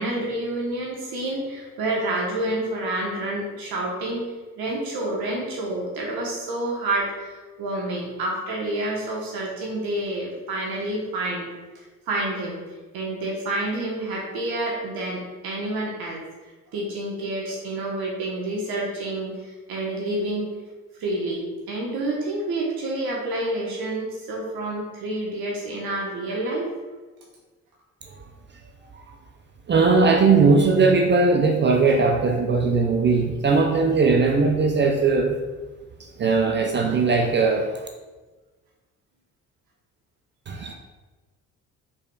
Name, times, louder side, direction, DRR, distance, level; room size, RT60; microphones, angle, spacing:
voice 1, 0.0-4.3 4.6-11.5 11.7-12.6 12.9-16.2 16.7-20.5 21.0-26.7, right 1 dB, 50° right, -2 dB, 1.0 m, -28 dB
voice 2, 29.7-35.4 36.0-37.9 40.5-40.7, right 4 dB, 25° right, 3 dB, 0.4 m, -19 dB
4.9 x 4.1 x 2.2 m, 1.3 s
figure-of-eight pair, 45°, 46 cm